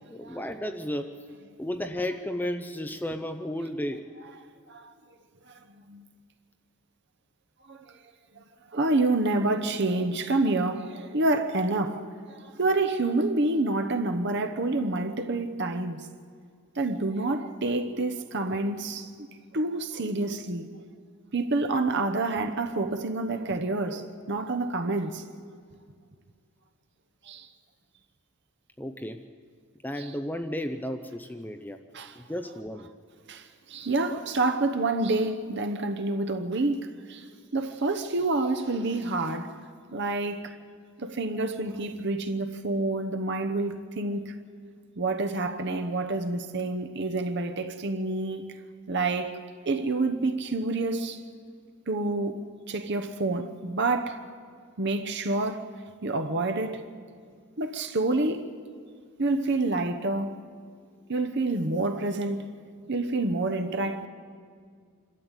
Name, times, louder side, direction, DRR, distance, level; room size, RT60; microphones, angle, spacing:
voice 1, 0.1-1.2 1.6-4.1 28.8-29.2 29.8-31.8 32.1-32.9 34.1-34.3, left 1 dB, 10° left, 0.6 m, -33 dB
voice 2, 7.7-8.0 8.7-16.1 16.7-19.1 19.5-20.7 21.3-25.2 27.2-27.5 30.0-30.1 31.9-32.2 33.3-37.2 37.5-39.6 39.9-40.6 41.0-44.4 45.0-48.5 48.9-49.4 49.7-51.2 51.9-54.2 54.8-55.7 56.0-56.9 57.6-58.5 59.2-60.4 61.1-62.5 62.9-64.1, right 2 dB, 50° right, 1.0 m, -28 dB
26.0 x 13.0 x 9.0 m
head